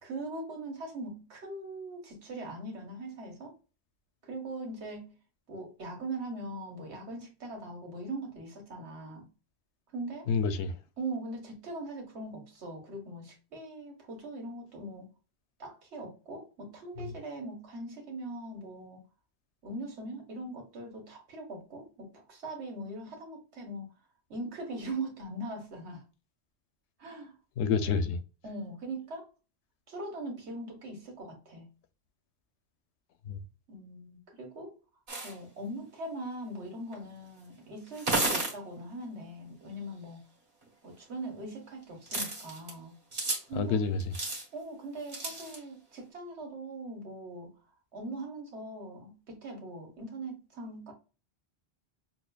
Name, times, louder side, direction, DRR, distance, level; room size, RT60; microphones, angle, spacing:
voice 1, 0.0-3.5 4.2-5.1 5.5-9.3 9.9-10.3 11.0-15.1 15.6-19.0 19.6-23.9 24.3-26.0 27.0-27.4 28.4-29.3 29.9-31.7 33.7-34.8 35.2-40.2 40.8-42.9 43.5-43.8 44.5-47.5 47.9-50.9, right 2 dB, 80° right, 1.4 m, -41 dB
voice 2, 10.3-10.7 27.6-28.2 33.3-33.4 43.5-44.1, left 5 dB, 85° left, 0.9 m, -28 dB
sound 1, 35.1-35.3 36.9-37.0 37.9-38.5 40.7-40.8 42.1-42.7 43.1-43.4 44.0-44.4 45.1-45.6, right 2 dB, 50° right, 1.5 m, -32 dB
6.0 x 2.0 x 2.2 m
omnidirectional pair, 1.1 m